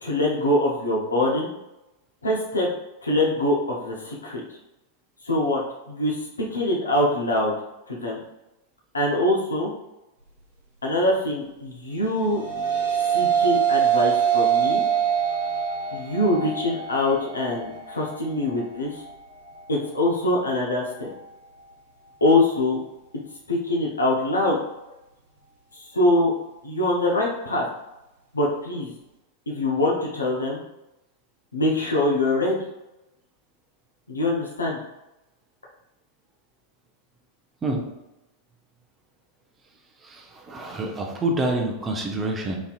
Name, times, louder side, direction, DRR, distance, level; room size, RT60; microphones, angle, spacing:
voice 1, 0.0-1.5 2.2-2.7 3.0-4.4 5.2-7.5 7.9-8.2 8.9-9.7 10.8-12.4 13.1-14.8 15.9-19.0 19.7-21.1 22.2-22.8 23.5-24.6 25.7-26.3 26.6-27.7 28.3-28.9 29.5-30.6 31.5-32.6 34.1-34.8, left 1 dB, 75° left, -2 dB, 0.6 m, -23 dB
sound 1, 12.1-21.2, right 8 dB, 70° right, 0.9 m, -25 dB
voice 2, 40.5-42.6, right 2 dB, 20° right, 1 dB, 0.6 m, -26 dB
4.1 x 2.7 x 2.4 m, 0.96 s
figure-of-eight pair, 90°, 0 cm